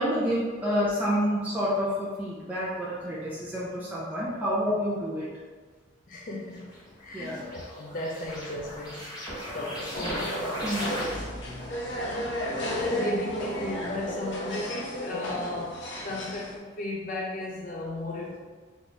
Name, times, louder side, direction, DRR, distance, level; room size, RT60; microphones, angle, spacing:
voice 1, 0.0-5.3 7.1-7.4 10.6-10.9, equal, 10° right, -9 dB, 0.6 m, -28 dB
voice 2, 6.1-6.7 7.0-9.1 9.5-10.0 12.0-18.4, left 2 dB, 45° left, -2 dB, 0.4 m, -35 dB
sound 1, 6.6-11.5, equal, 20° left, 1.3 m, -36 dB
sound 2, 9.9-16.6, equal, 70° left, 0.8 m, -33 dB
3.6 x 3.0 x 3.9 m, 1.5 s
head